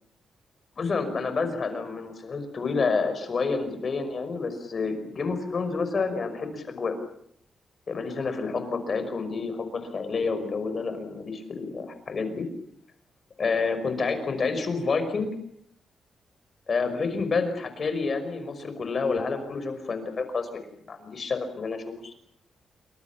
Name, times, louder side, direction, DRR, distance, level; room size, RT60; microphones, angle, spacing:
voice 1, 0.8-7.0 7.9-12.5 13.4-15.3 16.7-22.1, left 4 dB, 35° left, 8 dB, 5.5 m, -29 dB
27.5 x 25.5 x 7.1 m, 0.68 s
wide cardioid pair, 160°, 0 cm